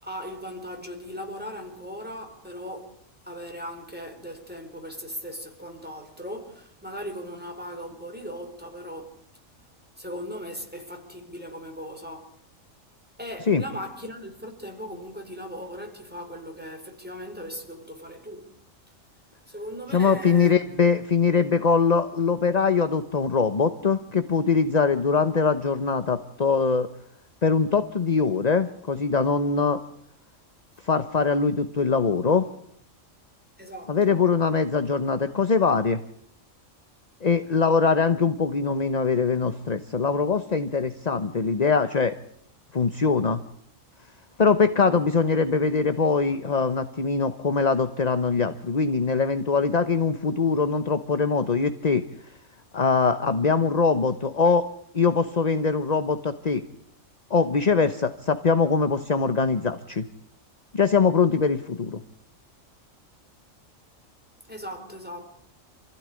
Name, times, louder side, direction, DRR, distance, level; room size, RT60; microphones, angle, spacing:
voice 1, 0.0-2.9 3.2-9.1 10.0-12.3 13.2-18.4 19.5-20.6 33.6-34.3 64.5-65.3, equal, 5° right, 4.7 m, -38 dB
voice 2, 19.9-26.9 27.4-29.8 30.8-32.4 33.9-36.0 37.2-42.1 42.7-43.4 44.4-52.0 52.7-54.7 54.9-56.6 57.3-60.0 60.7-62.0, left 5 dB, 35° left, 1.1 m, -22 dB
27.0 x 15.5 x 9.8 m
omnidirectional pair, 1.4 m